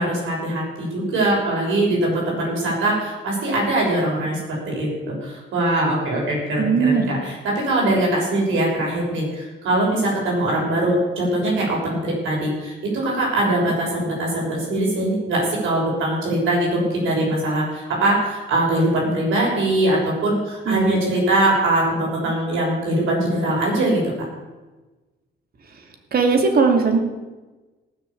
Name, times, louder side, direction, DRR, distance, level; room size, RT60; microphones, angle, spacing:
voice 1, 0.0-24.1, right 1 dB, 80° right, -3 dB, 6.2 m, -22 dB
voice 2, 6.6-7.1 20.7-21.0 26.1-27.0, right 4 dB, 50° right, 4 dB, 2.7 m, -18 dB
18.5 x 6.5 x 8.5 m, 1.2 s
cardioid pair, 90°, 20 cm